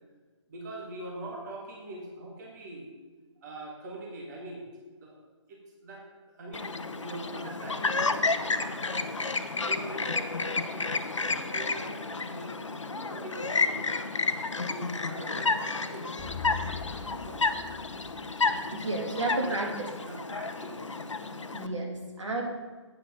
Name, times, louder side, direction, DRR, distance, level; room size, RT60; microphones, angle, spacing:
voice 1, 0.5-2.9 3.4-4.7 5.0-5.2 5.5-6.1 6.3-9.2 9.6-13.9 14.7-16.2 16.6-17.7 18.6-20.9, right 2 dB, 35° right, -1 dB, 1.9 m, -43 dB
Chirp tweet, 6.5-21.7, left 4 dB, 80° left, 0.8 m, -31 dB
sound 1, 16.2-18.9, left 7 dB, 20° left, 0.8 m, -41 dB
voice 2, 18.7-19.9 21.5-22.4, right 2 dB, 75° right, 0 dB, 2.6 m, -31 dB
8.9 x 6.1 x 6.9 m, 1.4 s
figure-of-eight pair, 145°, 15 cm